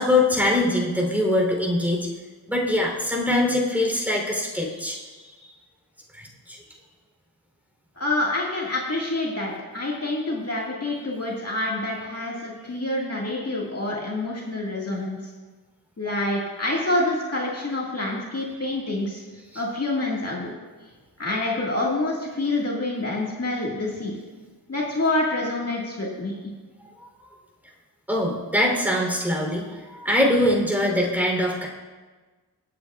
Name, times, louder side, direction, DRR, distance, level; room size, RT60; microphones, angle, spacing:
voice 1, 0.0-2.1 2.5-5.0 6.5-6.6 28.1-31.7, left 1 dB, 5° right, -2 dB, 3.5 m, -22 dB
voice 2, 8.0-15.2 16.0-19.2 19.6-20.5 21.2-24.2 24.7-26.4, left 2 dB, 40° left, -4 dB, 2.0 m, -27 dB
25.5 x 8.5 x 2.4 m, 1.3 s
wide cardioid pair, 75°, 38 cm